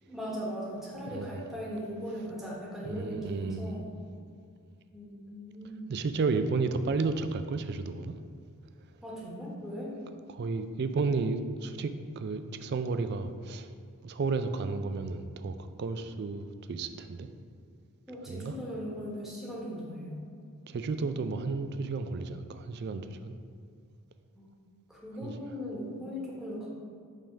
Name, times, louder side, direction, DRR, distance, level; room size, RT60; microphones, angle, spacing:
voice 1, 0.0-3.9 4.9-6.0 9.0-9.9 18.1-20.2 24.4-24.5 24.9-26.7, equal, ahead, -6 dB, 1.1 m, -39 dB
voice 2, 2.8-3.8 5.9-8.2 10.3-13.7 14.0-17.3 18.3-18.5 20.7-23.3 25.2-25.3, right 4 dB, 50° right, 9 dB, 0.3 m, -32 dB
5.5 x 3.6 x 5.1 m, 2.2 s
head